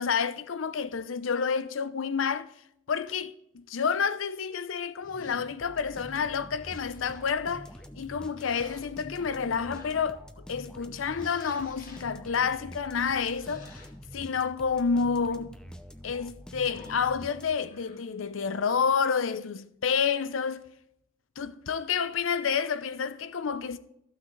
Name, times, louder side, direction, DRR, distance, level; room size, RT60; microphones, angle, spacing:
voice 1, 0.0-2.5 2.9-7.7 8.0-13.7 14.1-15.5 16.0-20.6 21.4-23.8, left 6 dB, 80° left, 0.6 m, -29 dB
sound 1, 5.0-5.6 6.6-7.4 8.3-9.3 9.7-10.2 11.1-12.1 13.2-13.9 16.5-17.1 17.6-18.0, left 2 dB, 45° left, 1.7 m, -50 dB
sound 2, 5.6-17.8, equal, 5° left, 0.6 m, -46 dB
14.0 x 6.1 x 3.1 m
head